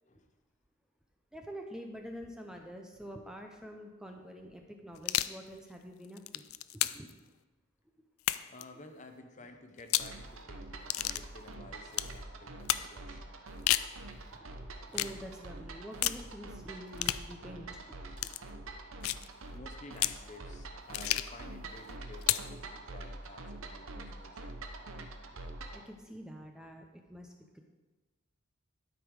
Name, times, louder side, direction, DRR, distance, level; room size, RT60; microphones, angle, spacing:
voice 1, 1.3-6.4 6.8-7.3 13.6-13.8 14.3-14.5 14.8-18.0 25.7-27.6, equal, 5° right, 2 dB, 0.5 m, -47 dB
sound 1, 5.0-5.4 6.0-7.1 8.2-8.6 9.8-10.1 10.9-11.2 11.9-12.1 12.7-12.9 13.5-13.9 14.9-15.2 16.0-16.2 17.0-17.3 18.2-18.4 19.0-19.3 20.0-20.2 20.9-21.4 22.2-22.5, left 15 dB, 85° left, 0.3 m, -31 dB
voice 2, 8.5-13.3 18.9-19.0 19.5-24.6, left 2 dB, 35° left, 6 dB, 0.8 m, -53 dB
sound 2, 10.0-25.9, right 2 dB, 75° right, 0.9 m, -46 dB
12.5 x 5.3 x 4.7 m, 1.2 s
head